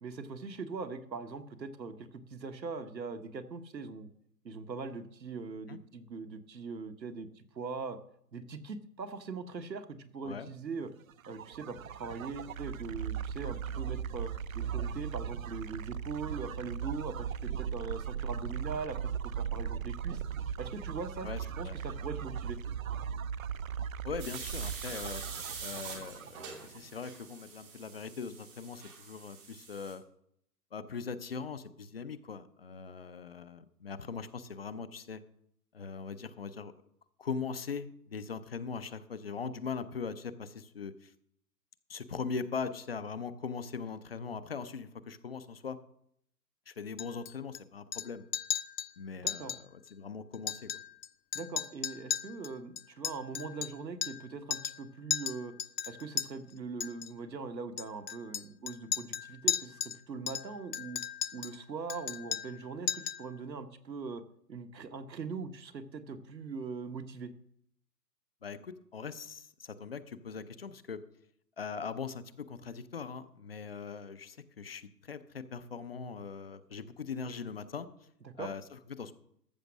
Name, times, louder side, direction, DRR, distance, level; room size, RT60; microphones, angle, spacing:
voice 1, 0.0-4.1 4.4-8.0 8.3-10.9 11.3-19.0 19.2-20.2 20.6-21.3 21.5-22.6 49.2-49.6 51.3-55.5 55.9-61.0 61.3-64.2 64.5-67.3 78.2-78.5, right 4 dB, 85° right, 7 dB, 1.3 m, -41 dB
sound 1, 11.1-26.8, right 8 dB, 55° right, 0.6 m, -38 dB
voice 2, 21.2-21.7 24.0-25.2 25.6-30.0 30.7-35.2 35.7-36.7 37.2-41.1 41.9-45.8 46.7-48.2 49.0-49.5 49.9-50.7 68.4-71.0 71.6-77.9 78.4-78.6 78.9-79.1, left 5 dB, 40° left, 14 dB, 0.6 m, -40 dB
sound 2, 24.2-29.9, right 5 dB, 10° right, 0.6 m, -45 dB
Chink clink, 47.0-47.6 47.9-48.1 48.3-48.9 49.3-49.6 49.9-50.0 50.3-51.1 51.3-54.3 54.5-54.8 55.1-56.3 56.8-57.1 57.8-60.0 60.3-61.6 61.9-62.6 62.9-63.3, left 9 dB, 75° left, 0.7 m, -35 dB
13.5 x 5.9 x 6.3 m, 0.72 s
hypercardioid pair, 145°, 50 cm